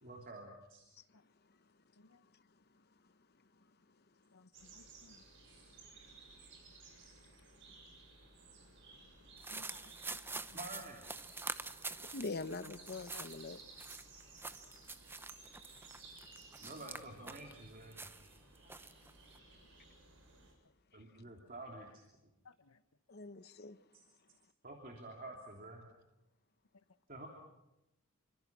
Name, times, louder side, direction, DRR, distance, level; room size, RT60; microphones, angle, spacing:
voice 1, 0.0-0.8 10.5-11.1 11.4-11.5 16.6-18.1 20.9-22.0 24.6-25.9 27.1-27.3, right 2 dB, 40° right, 3.1 m, -49 dB
voice 2, 4.3-5.2 9.5-10.4 12.6-12.7 13.1-13.3 16.8-16.9 22.4-22.8, left 4 dB, 80° left, 1.0 m, -59 dB
sound 1, 4.5-20.5, right 3 dB, 60° right, 7.5 m, -58 dB
sound 2, 9.4-17.5 17.9-19.4, right 3 dB, 10° right, 0.8 m, -46 dB
voice 3, 12.0-13.6 23.1-23.8, left 3 dB, 50° left, 0.9 m, -43 dB
27.5 x 25.0 x 6.2 m
head